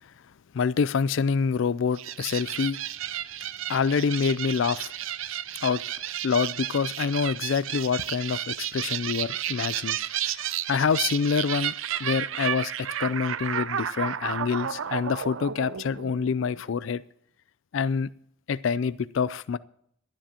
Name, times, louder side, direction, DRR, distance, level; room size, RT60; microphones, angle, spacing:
voice 1, 0.5-2.8 3.7-4.9 5.6-5.8 6.2-10.0 10.3-11.7 12.0-17.0 17.7-18.1 18.5-19.6, left 6 dB, 70° left, 17 dB, 0.4 m, -26 dB
sound 1, 2.0-16.6, right 10 dB, 75° right, 0.5 m, -32 dB
26.5 x 9.8 x 2.9 m, 0.68 s
head